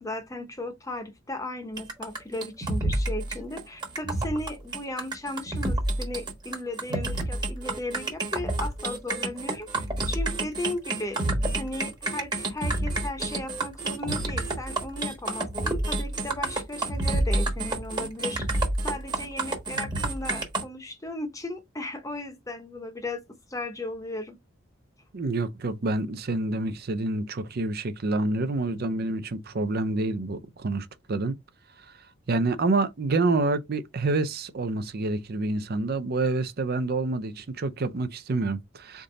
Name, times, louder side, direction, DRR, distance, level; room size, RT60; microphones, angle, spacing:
voice 1, 0.0-9.7 10.1-11.2 11.6-23.2 23.5-24.4, left 2 dB, 15° left, 0.8 m, -36 dB
sound 1, 1.8-20.6, right 2 dB, 20° right, 1.2 m, -29 dB
voice 2, 25.1-31.4 32.3-39.0, right 2 dB, 50° right, 0.5 m, -27 dB
3.8 x 3.6 x 3.8 m
head